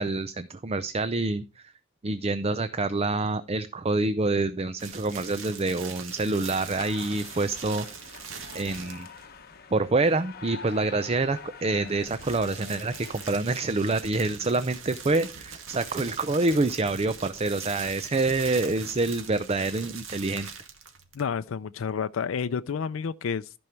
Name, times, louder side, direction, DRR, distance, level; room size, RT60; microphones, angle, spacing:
voice 1, 0.0-1.6 2.0-7.9 8.5-9.1 9.7-20.5, right 3 dB, 30° right, 0.5 m, -27 dB
sound 1, 4.8-9.3 11.7-21.3, right 6 dB, 70° right, 2.0 m, -42 dB
sound 2, 6.7-13.3, left 4 dB, 50° left, 1.1 m, -45 dB
voice 2, 21.1-23.5, left 6 dB, 75° left, 0.4 m, -30 dB
14.5 x 5.3 x 4.4 m
head